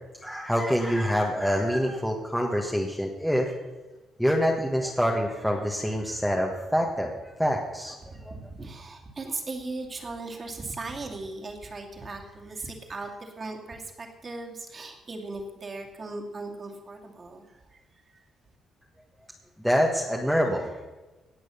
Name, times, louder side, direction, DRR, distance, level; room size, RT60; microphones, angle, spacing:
voice 1, 0.2-3.5 4.2-8.3 19.6-20.8, equal, ahead, -1 dB, 1.4 m, -26 dB
voice 2, 8.0-17.8 18.1-18.2, right 3 dB, 35° right, 2 dB, 2.5 m, -38 dB
18.5 x 6.2 x 7.0 m, 1.2 s
cardioid pair, 90°, 0 cm